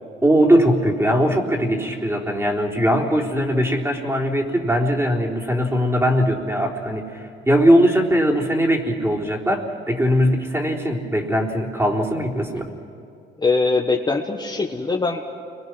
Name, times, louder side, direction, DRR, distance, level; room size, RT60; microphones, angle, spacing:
voice 1, 0.2-12.7, equal, 15° right, 0 dB, 3.8 m, -20 dB
voice 2, 13.4-15.2, left 3 dB, 20° left, 1 dB, 1.5 m, -21 dB
30.0 x 23.0 x 6.2 m, 2.5 s
cardioid pair, 90°, 20 cm